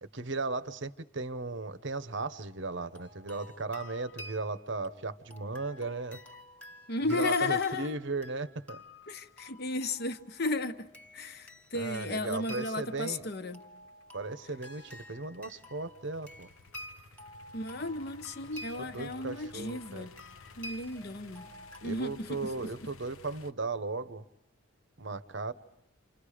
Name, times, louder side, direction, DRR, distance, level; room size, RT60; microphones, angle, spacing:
voice 1, 0.0-6.2 7.1-8.8 11.7-13.3 14.1-16.5 18.8-20.1 21.8-24.3 25.0-25.5, right 3 dB, 55° right, 0.9 m, -36 dB
sound 1, 2.8-21.8, left 1 dB, 5° left, 1.6 m, -50 dB
voice 2, 6.9-7.9 9.1-10.9 11.1-13.6 17.5-20.1 20.6-21.5 21.8-22.7, left 2 dB, 50° left, 1.1 m, -34 dB
sound 2, 9.0-23.5, left 4 dB, 90° left, 1.0 m, -55 dB
29.0 x 26.5 x 5.0 m
head